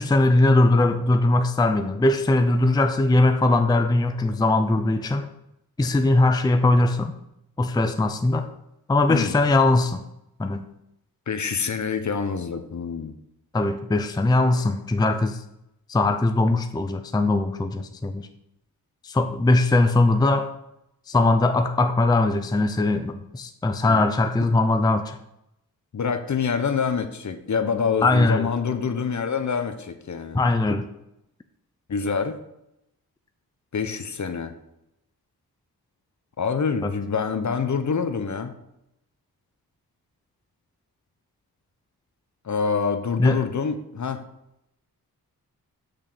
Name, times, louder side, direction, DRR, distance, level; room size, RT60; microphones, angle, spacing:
voice 1, 0.0-5.3 5.8-7.1 7.6-8.5 8.9-10.0 10.4-10.7 13.5-15.4 15.9-18.3 19.0-20.5 21.1-25.2 28.0-28.5 30.3-30.9 36.8-36.9 43.2-43.4, left 2 dB, 10° left, 7 dB, 0.5 m, -20 dB
voice 2, 11.3-13.2 23.8-24.0 25.9-30.4 31.9-32.4 33.7-34.5 36.4-38.6 42.4-44.2, left 5 dB, 50° left, 8 dB, 1.0 m, -26 dB
6.7 x 6.1 x 6.7 m, 0.83 s
wide cardioid pair, 100°, 38 cm